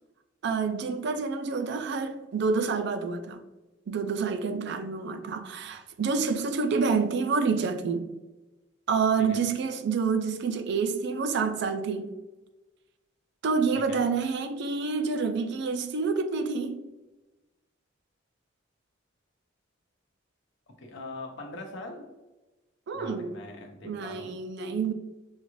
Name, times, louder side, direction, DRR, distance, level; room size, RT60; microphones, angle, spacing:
voice 1, 0.4-3.4 3.9-8.1 8.9-12.1 13.4-16.9 22.9-23.4 23.8-24.9, right 5 dB, 60° right, 0.4 m, -28 dB
voice 2, 20.8-22.1 22.9-24.4, left 2 dB, 65° left, 0.8 m, -42 dB
5.4 x 2.4 x 3.0 m
head